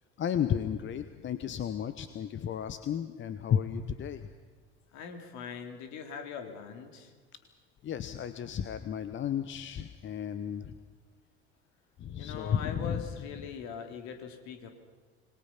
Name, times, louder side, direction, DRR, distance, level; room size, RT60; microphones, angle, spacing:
voice 1, 0.2-4.3 7.8-10.7 12.0-13.0, left 8 dB, 35° left, 11 dB, 1.1 m, -33 dB
voice 2, 4.9-7.1 12.2-14.7, left 6 dB, 55° left, 5 dB, 3.1 m, -41 dB
26.5 x 21.5 x 5.9 m, 1.5 s
figure-of-eight pair, 65°, 32 cm